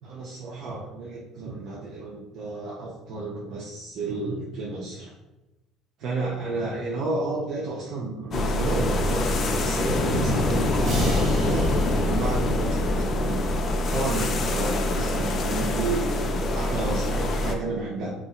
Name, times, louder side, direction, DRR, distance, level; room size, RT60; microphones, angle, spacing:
voice 1, 0.0-5.1 6.0-11.7 12.0-13.4 13.8-18.1, right 3 dB, 60° right, -4 dB, 0.5 m, -31 dB
sound 1, 8.3-17.5, left 2 dB, 45° left, 0.3 m, -25 dB
sound 2, 10.8-13.6, right 2 dB, 45° right, 1.4 m, -38 dB
2.8 x 2.3 x 2.3 m, 1.0 s
supercardioid pair, 75°, 0 cm